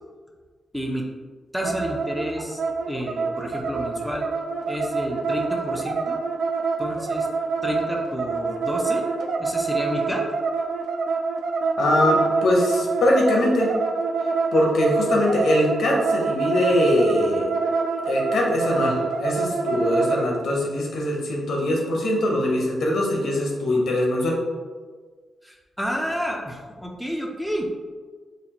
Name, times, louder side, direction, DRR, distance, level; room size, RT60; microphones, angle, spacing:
voice 1, 0.7-1.0 1.5-2.6 2.9-4.3 4.7-6.2 6.8-7.3 7.6-9.0 9.4-10.2 25.4-27.7, equal, ahead, 0 dB, 0.5 m, -30 dB
sound 1, 1.6-20.3, right 4 dB, 70° right, 0.3 m, -26 dB
voice 2, 11.8-13.7 14.5-17.5 18.1-24.4, left 1 dB, 80° left, -1 dB, 0.8 m, -22 dB
4.0 x 2.4 x 2.9 m, 1.5 s
cardioid pair, 90°, 0 cm